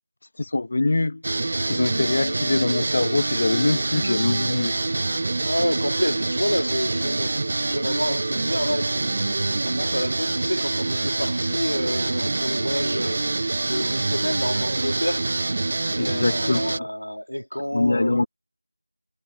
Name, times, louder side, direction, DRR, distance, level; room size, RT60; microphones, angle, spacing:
voice 1, 0.4-1.2 1.7-4.8 16.0-16.9 17.7-18.3, left 2 dB, 30° left, 1.0 m, -23 dB
sound 1, 1.2-16.8, right 2 dB, 25° right, 0.3 m, -26 dB
voice 2, 5.4-15.3 15.9-18.3, equal, 80° left, 2.2 m, -29 dB
figure-of-eight pair, 175°, 0 cm